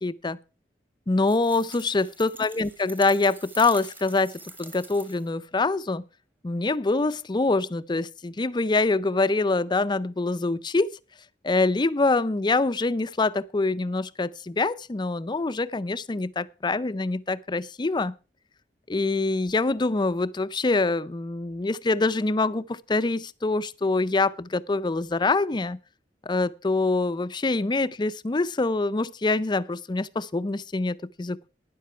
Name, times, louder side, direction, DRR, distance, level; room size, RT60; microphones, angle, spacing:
voice 1, 0.0-0.4 1.1-6.0 6.4-11.0 11.4-18.1 18.9-25.8 26.3-31.5, left 3 dB, 25° left, 0.5 m, -25 dB
sound 1, 1.2-5.4, right 2 dB, 10° right, 1.2 m, -45 dB
12.5 x 10.0 x 4.4 m
head